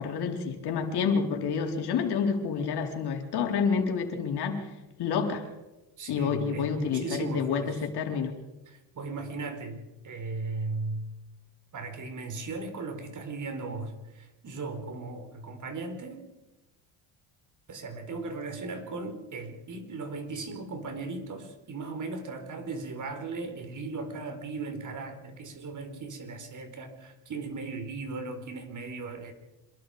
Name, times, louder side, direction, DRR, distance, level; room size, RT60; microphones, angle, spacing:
voice 1, 0.0-4.7 5.0-5.5 6.1-8.3, left 6 dB, 60° left, 3 dB, 4.3 m, -28 dB
voice 2, 6.0-7.9 8.7-11.1 11.7-16.3 17.7-29.3, right 3 dB, 40° right, 7 dB, 4.6 m, -37 dB
27.0 x 22.0 x 5.1 m, 1.0 s
cardioid pair, 115°, 45 cm